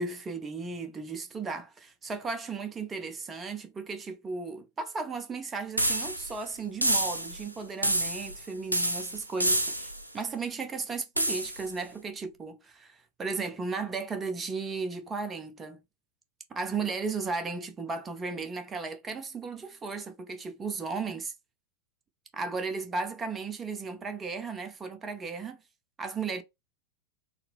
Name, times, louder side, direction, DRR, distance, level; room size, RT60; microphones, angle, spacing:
voice 1, 0.0-15.8 16.5-21.3 22.3-25.6 26.0-26.4, right 4 dB, 20° right, 0.7 m, -35 dB
sound 1, 5.8-6.4 6.8-7.4 7.8-8.4 8.7-10.0 11.2-11.7, right 1 dB, 85° right, 0.4 m, -28 dB
4.1 x 2.0 x 2.2 m
figure-of-eight pair, 90°, 0 cm